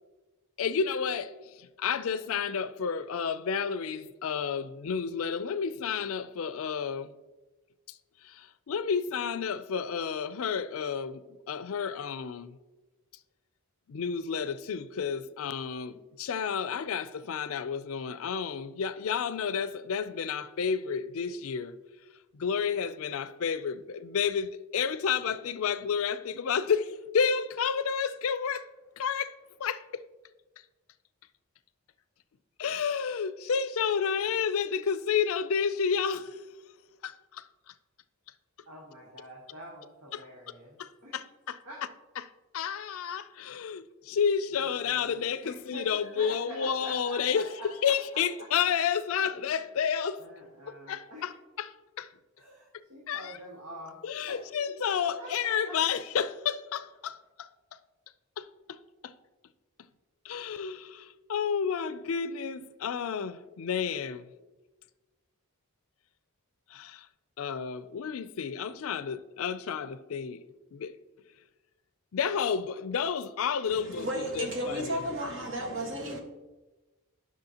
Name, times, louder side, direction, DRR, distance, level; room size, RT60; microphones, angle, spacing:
voice 1, 0.6-7.1 8.2-12.6 13.9-21.8 22.3-28.7 29.0-30.0 32.6-36.4 37.0-37.5 40.1-40.2 40.8-41.6 42.5-47.5 47.8-50.2 50.9-51.3 51.6-52.1 53.1-53.4 54.0-57.5 58.4-58.8 59.0-59.1 60.2-64.3 66.7-67.1 67.4-70.4 70.7-71.0 72.1-75.0, left 6 dB, 70° left, 0.4 m, -31 dB
voice 2, 38.6-40.8 41.0-41.1 41.6-41.8 44.5-47.9 49.2-49.6 50.2-51.3 52.4-54.0 54.3-54.7 55.2-55.8, equal, 85° right, 1.7 m, -46 dB
voice 3, 73.7-76.2, equal, 55° right, 1.4 m, -33 dB
10.5 x 6.1 x 2.8 m
head